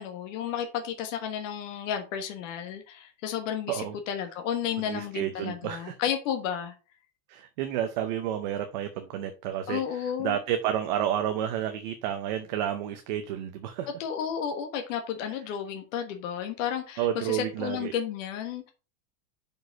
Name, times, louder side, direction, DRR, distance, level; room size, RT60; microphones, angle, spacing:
voice 1, 0.0-6.7 9.7-10.4 14.0-18.7, left 9 dB, 50° left, 5 dB, 1.4 m, -32 dB
voice 2, 4.9-5.9 7.3-9.8 10.2-13.9 17.0-17.9, right 10 dB, 30° right, 6 dB, 0.5 m, -30 dB
6.1 x 5.2 x 5.2 m, 0.31 s
supercardioid pair, 175°, 48 cm